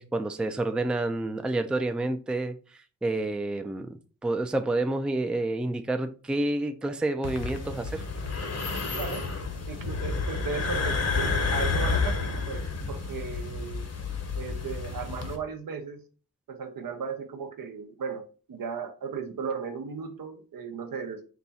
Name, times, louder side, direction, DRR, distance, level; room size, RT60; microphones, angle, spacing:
voice 1, 0.0-3.9 4.2-8.0, right 2 dB, 5° right, 7 dB, 0.4 m, -29 dB
sound 1, 7.2-15.4, left 4 dB, 45° left, 0.9 m, -30 dB
voice 2, 8.9-9.2 9.7-13.8 14.4-16.0 16.5-18.2 18.5-21.2, right 5 dB, 75° right, 6 dB, 0.8 m, -36 dB
4.1 x 2.3 x 4.0 m, 0.37 s
cardioid pair, 75°, 34 cm